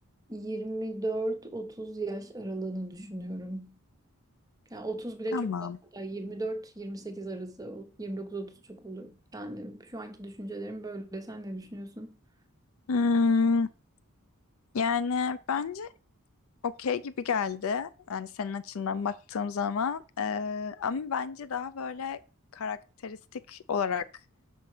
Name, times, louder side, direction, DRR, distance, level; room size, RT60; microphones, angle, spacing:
voice 1, 0.3-3.8 4.7-5.7 5.9-12.2, right 2 dB, 15° right, 0.9 m, -37 dB
voice 2, 5.3-5.8 12.9-13.7 14.7-15.9 16.6-22.2 22.5-22.8 23.0-24.0, left 5 dB, 65° left, 0.4 m, -29 dB
6.1 x 5.3 x 4.9 m
head